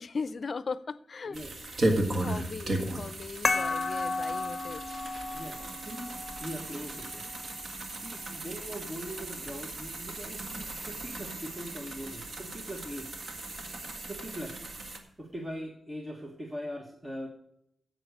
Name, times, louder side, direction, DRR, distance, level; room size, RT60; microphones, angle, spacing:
voice 1, 0.0-1.4 2.2-4.8, left 4 dB, 50° left, 0.5 m, -38 dB
voice 2, 1.3-1.6 5.3-6.1 6.4-7.3 7.9-13.2 14.1-14.6 15.2-17.3, equal, 20° right, 1.4 m, -41 dB
sound 1, 1.3-15.0, right 1 dB, 55° right, 1.8 m, -36 dB
sound 2, 3.4-8.5, left 3 dB, 30° left, 1.1 m, -34 dB
9.9 x 7.9 x 6.5 m
wide cardioid pair, 105°, 0 cm